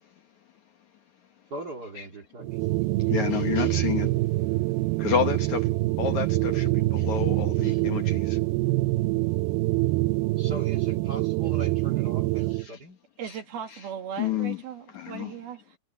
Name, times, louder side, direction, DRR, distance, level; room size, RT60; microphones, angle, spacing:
voice 1, 1.5-2.6 10.4-13.0, right 1 dB, 40° right, 1.5 m, -40 dB
sound 1, 2.4-12.7, right 20 dB, 85° right, 2.2 m, -25 dB
voice 2, 3.1-4.2 5.0-5.7 6.0-8.4 14.2-14.6 14.9-15.3, left 8 dB, 60° left, 2.1 m, -29 dB
voice 3, 13.2-15.8, right 8 dB, 70° right, 3.8 m, -38 dB
omnidirectional pair, 4.8 m